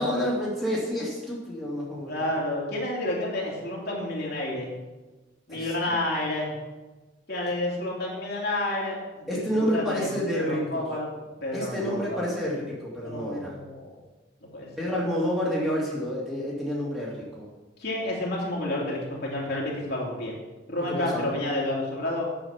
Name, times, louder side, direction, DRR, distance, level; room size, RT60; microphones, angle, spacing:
voice 1, 0.0-2.3 5.5-6.0 9.3-10.8 11.5-13.6 14.8-17.4 20.9-21.3, equal, ahead, -6 dB, 2.4 m, -29 dB
voice 2, 2.1-4.7 5.5-6.5 7.3-11.1 11.4-12.2 13.0-13.9 14.5-14.9 17.8-20.3 20.7-22.2, left 1 dB, 60° left, -4 dB, 2.8 m, -30 dB
9.2 x 7.7 x 5.9 m, 1.2 s
head